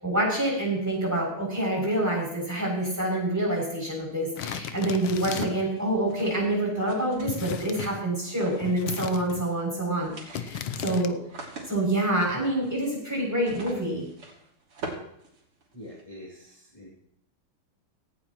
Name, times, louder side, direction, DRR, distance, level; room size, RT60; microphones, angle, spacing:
voice 1, 0.0-11.2 11.7-14.0, right 1 dB, 5° right, -3 dB, 6.9 m, -27 dB
sound 1, 4.4-5.7 7.3-8.0 8.6-9.5 10.3-11.1, left 9 dB, 75° left, 1.6 m, -35 dB
sound 2, 5.2-7.7 8.3-9.2 9.5-9.6 9.9-16.0, right 3 dB, 90° right, 3.9 m, -43 dB
voice 2, 15.7-16.9, left 1 dB, 15° left, -3 dB, 2.8 m, -45 dB
17.5 x 16.0 x 3.1 m, 0.72 s
omnidirectional pair, 2.4 m